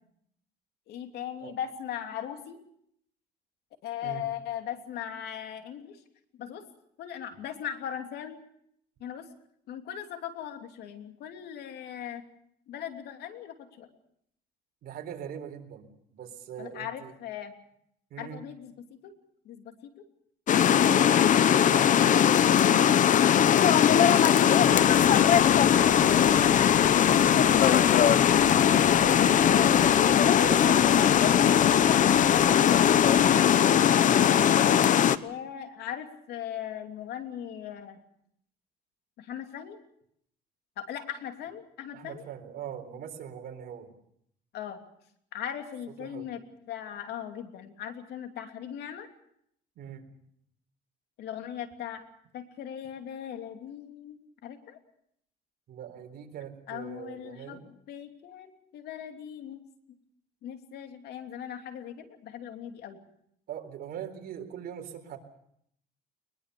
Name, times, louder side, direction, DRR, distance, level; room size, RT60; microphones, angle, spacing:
voice 1, 0.9-2.6 3.8-6.0 6.4-6.6 7.0-8.4 9.0-9.3 9.7-12.2 12.7-13.9 16.6-17.5 18.2-19.1 19.4-20.0 23.0-23.6 28.0-29.1 30.9-31.0 35.2-38.0 39.2-39.8 40.8-42.2 44.5-44.8 45.3-49.1 51.2-52.0 52.3-54.8 56.7-59.7 60.4-63.0, left 9 dB, 75° left, 6 dB, 3.0 m, -39 dB
voice 2, 14.8-17.1 18.1-18.4 20.6-23.0 23.6-24.9 29.0-29.9 30.4-32.0 41.9-43.9 46.0-46.3 49.8-50.0 55.7-57.6 63.5-65.2, right 9 dB, 65° right, 5 dB, 4.1 m, -41 dB
sound 1, 20.5-35.2, left 9 dB, 50° left, 0.9 m, -20 dB
sound 2, 24.6-33.3, right 1 dB, 5° right, 5.4 m, -41 dB
22.0 x 21.5 x 6.9 m, 0.72 s
cardioid pair, 110°, 17 cm